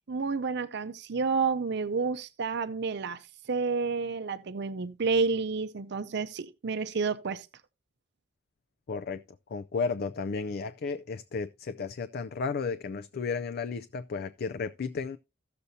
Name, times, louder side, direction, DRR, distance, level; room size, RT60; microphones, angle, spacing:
voice 1, 0.1-3.2 3.5-7.5, right 4 dB, 60° right, 0.6 m, -30 dB
voice 2, 8.9-9.2 9.5-15.2, left 4 dB, 55° left, 0.4 m, -33 dB
15.5 x 6.7 x 2.7 m
head